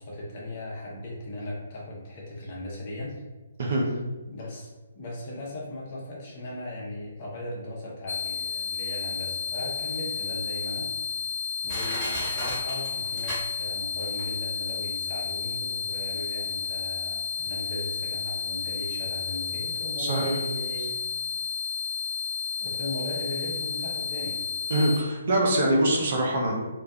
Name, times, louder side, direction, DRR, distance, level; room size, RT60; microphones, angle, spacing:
voice 1, 0.0-3.2 4.3-10.9 11.6-20.9 22.6-24.4, left 1 dB, 35° left, -4 dB, 0.7 m, -37 dB
sound 1, 8.1-25.0, left 6 dB, 70° left, 0.3 m, -32 dB
Crushing, 11.1-11.2 11.7-13.9 14.2-14.3, equal, ahead, 1.3 m, -34 dB
voice 2, 20.0-20.4 24.7-26.5, right 1 dB, 45° right, 0 dB, 0.5 m, -24 dB
2.2 x 2.2 x 2.6 m, 1.1 s
figure-of-eight pair, 135°, 0 cm